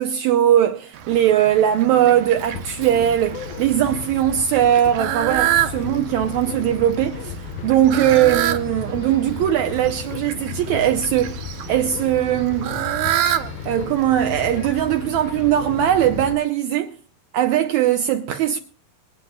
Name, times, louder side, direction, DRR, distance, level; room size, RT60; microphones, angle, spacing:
voice 1, 0.0-12.7 13.6-16.9 17.3-18.6, right 11 dB, 85° right, 1.6 m, -20 dB
Fowl, 0.9-16.3, right 12 dB, 70° right, 2.2 m, -29 dB
sound 1, 2.3-16.4, left 5 dB, 80° left, 2.9 m, -34 dB
26.5 x 9.9 x 2.2 m
omnidirectional pair, 4.2 m